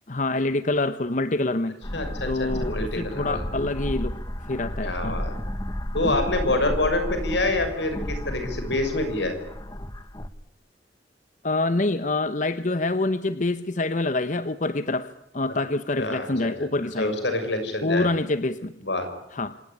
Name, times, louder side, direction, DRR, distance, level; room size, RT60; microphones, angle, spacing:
voice 1, 0.1-1.8 2.3-5.2 6.0-6.2 11.4-17.1 17.8-18.7 19.3-19.5, left 2 dB, 45° left, 13 dB, 0.9 m, -26 dB
sound 1, 1.8-10.3, equal, 20° left, 1.3 m, -32 dB
voice 2, 1.9-3.4 4.8-5.3 5.9-9.4 16.0-16.5 17.0-18.1 18.8-19.1, left 2 dB, 80° left, 8 dB, 6.5 m, -26 dB
27.0 x 18.5 x 10.0 m, 0.80 s
head